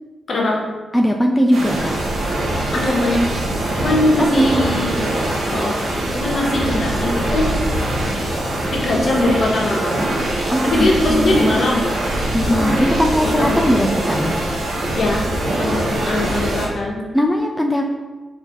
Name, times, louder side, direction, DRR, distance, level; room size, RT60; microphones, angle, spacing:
voice 1, 0.3-0.6 2.7-3.2 3.7-5.1 5.4-5.8 6.1-7.6 8.7-10.1 10.6-12.0 12.4-12.9 13.2-13.6 15.0-15.2 15.6-17.0, left 1 dB, 55° left, -2 dB, 1.0 m, -20 dB
voice 2, 0.9-1.9 4.2-4.6 10.5-11.4 12.3-14.4 17.1-17.8, equal, 5° left, 2 dB, 0.3 m, -19 dB
sound 1, 1.5-16.7, right 1 dB, 85° right, 0.9 m, -22 dB
4.1 x 2.7 x 4.4 m, 1.2 s
cardioid pair, 105°, 0 cm